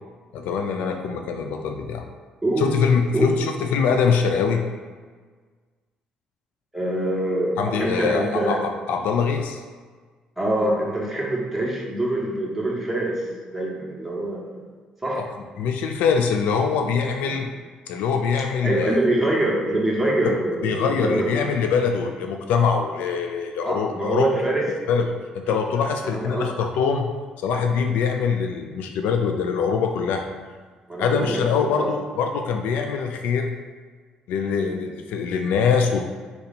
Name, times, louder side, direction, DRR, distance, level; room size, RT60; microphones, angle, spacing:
voice 1, 0.3-2.0 2.6-4.6 7.6-9.6 15.2-15.3 15.6-17.5 17.9-19.0 20.6-24.3 24.9-27.1 27.4-30.3 31.0-33.5 34.3-36.0, left 6 dB, 80° left, 5 dB, 0.3 m, -23 dB
voice 2, 2.4-2.7 3.1-3.4 6.7-8.6 10.4-13.2 13.5-14.5 15.0-15.2 17.2-17.4 18.6-21.3 23.7-24.7 25.4-25.6 26.0-26.5 30.9-32.0 34.5-34.7, right 1 dB, 5° right, -4 dB, 1.1 m, -24 dB
4.0 x 2.8 x 4.1 m, 1.5 s
cardioid pair, 85°, 3 cm